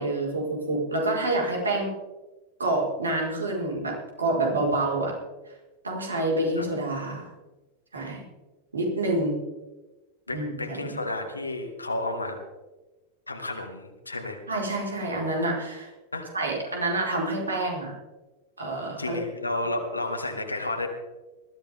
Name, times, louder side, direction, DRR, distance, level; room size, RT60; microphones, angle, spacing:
voice 1, 0.0-1.9 2.6-5.1 5.8-7.3 7.9-8.2 8.7-9.4 10.3-11.0 14.5-15.9 16.3-17.9 18.6-19.2, right 2 dB, 75° right, -2 dB, 4.7 m, -27 dB
voice 2, 10.3-12.4 13.3-14.4 16.1-16.3 16.7-16.8 19.0-20.9, left 2 dB, 80° left, 3 dB, 2.1 m, -32 dB
20.5 x 14.0 x 3.6 m, 1.1 s
figure-of-eight pair, 90°, 0 cm